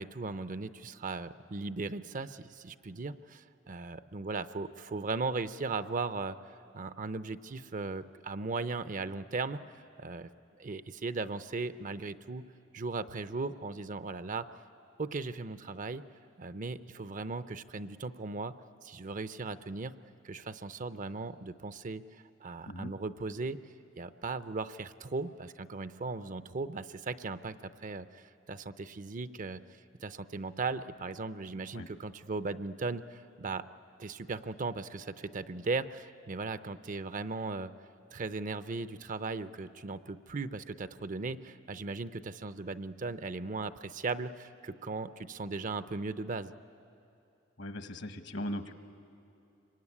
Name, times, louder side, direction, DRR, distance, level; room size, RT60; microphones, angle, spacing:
voice 1, 0.0-10.3 10.6-12.5 12.7-14.5 15.0-16.0 16.4-18.5 18.8-19.9 20.2-22.0 22.4-23.6 24.0-29.6 30.0-33.7 34.0-37.7 38.1-46.5, right 3 dB, 40° right, 13 dB, 0.6 m, -37 dB
voice 2, 47.6-48.7, left 1 dB, 65° left, 9 dB, 1.3 m, -39 dB
26.0 x 23.5 x 9.8 m, 2.6 s
head